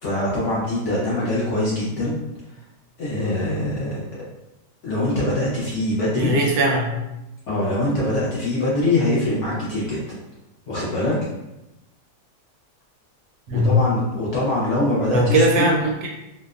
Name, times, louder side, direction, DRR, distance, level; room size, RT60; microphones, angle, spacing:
voice 1, 0.0-2.2 3.0-4.0 4.8-6.3 7.5-10.0 10.7-11.2 13.5-15.7, left 1 dB, 70° left, -7 dB, 0.7 m, -23 dB
voice 2, 6.1-6.9 13.5-13.8 15.1-16.1, right 1 dB, 70° right, 0 dB, 0.9 m, -19 dB
2.7 x 2.0 x 2.3 m, 0.94 s
omnidirectional pair, 1.8 m